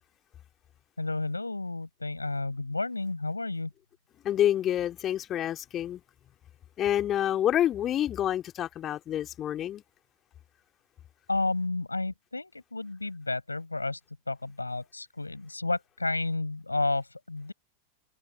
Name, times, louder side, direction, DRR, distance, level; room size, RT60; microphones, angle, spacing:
voice 1, 1.0-3.7 11.3-14.0 14.3-17.5, left 2 dB, 80° left, 6.5 m, -31 dB
voice 2, 4.2-6.0 6.8-9.8, left 11 dB, 30° left, 2.5 m, -28 dB
figure-of-eight pair, 90°, 0 cm